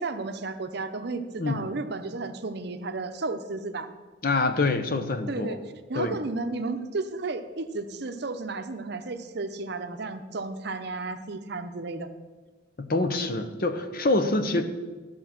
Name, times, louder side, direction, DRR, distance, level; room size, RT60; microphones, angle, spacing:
voice 1, 0.0-3.9 5.3-5.6 5.9-12.1 14.4-14.6, right 3 dB, 60° right, 8 dB, 0.7 m, -33 dB
voice 2, 4.2-5.6 5.9-6.2 12.8-14.6, left 2 dB, 50° left, 9 dB, 0.9 m, -26 dB
13.5 x 6.3 x 5.9 m, 1.3 s
head